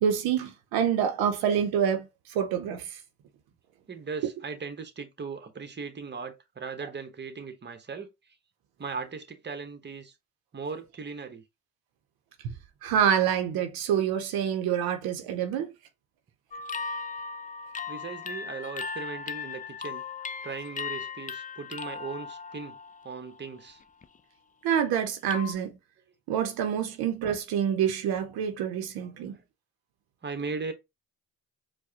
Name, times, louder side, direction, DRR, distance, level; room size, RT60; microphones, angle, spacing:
voice 1, 0.0-3.0 12.8-15.7 24.6-25.8 26.3-29.4, right 8 dB, 80° right, 0.7 m, -27 dB
voice 2, 3.9-8.1 8.8-10.1 10.5-11.4 17.9-20.0 20.4-22.8 23.0-23.8 26.9-27.0 29.0-29.4 30.2-30.7, right 4 dB, 30° right, 1.0 m, -38 dB
sound 1, 16.5-23.4 23.8-24.2 25.3-25.5, left 5 dB, 25° left, 0.4 m, -37 dB
4.6 x 2.2 x 2.7 m
supercardioid pair, 60°, 36 cm